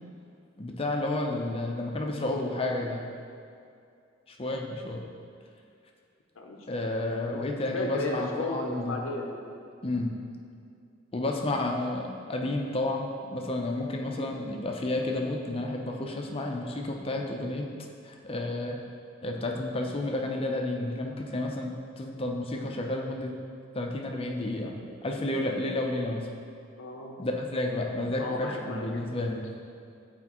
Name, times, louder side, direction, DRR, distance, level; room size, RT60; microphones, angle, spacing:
voice 1, 0.6-3.0 4.3-5.1 6.7-9.0 9.8-10.1 11.1-17.7 18.0-18.8 19.2-21.7 22.0-23.3 23.7-24.8 25.0-26.3 27.2-29.4, left 2 dB, 30° left, 1 dB, 0.5 m, -31 dB
voice 2, 6.4-6.8 7.3-7.5 7.7-9.7 26.8-27.2 28.2-29.4, left 2 dB, 80° left, 1 dB, 0.6 m, -35 dB
8.2 x 4.3 x 3.0 m, 2.4 s
head